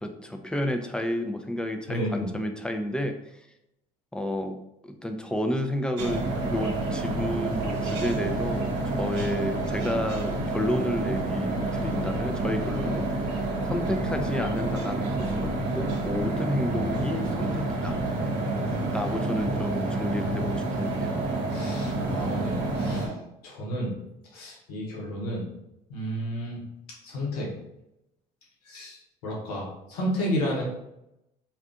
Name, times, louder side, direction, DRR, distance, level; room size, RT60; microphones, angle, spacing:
voice 1, 0.0-3.2 4.1-4.6 4.8-18.0 18.9-21.1, left 1 dB, 5° left, 5 dB, 0.4 m, -31 dB
voice 2, 1.9-2.3 21.5-23.1 23.4-23.9 24.3-25.4 25.9-26.6 27.0-27.5 28.7-29.0 29.2-30.6, equal, 90° left, -3 dB, 0.9 m, -31 dB
sound 1, 6.0-23.1, right 2 dB, 65° right, 0.9 m, -28 dB
2.5 x 2.3 x 3.6 m, 0.85 s
hypercardioid pair, 65°, 19 cm